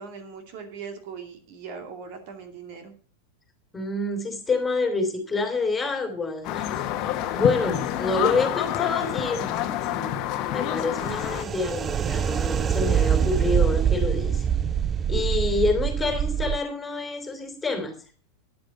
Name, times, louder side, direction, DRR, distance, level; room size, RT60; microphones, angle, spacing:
voice 1, 0.0-2.9, right 5 dB, 45° right, 5 dB, 2.4 m, -40 dB
voice 2, 3.7-6.7 7.3-14.5 15.1-18.0, left 3 dB, 15° left, 6 dB, 2.9 m, -27 dB
sound 1, 6.4-11.4, left 12 dB, 40° left, 1.3 m, -28 dB
sound 2, 11.0-16.6, right 8 dB, 25° right, 0.5 m, -24 dB
13.0 x 10.5 x 4.1 m, 0.42 s
figure-of-eight pair, 90°, 0 cm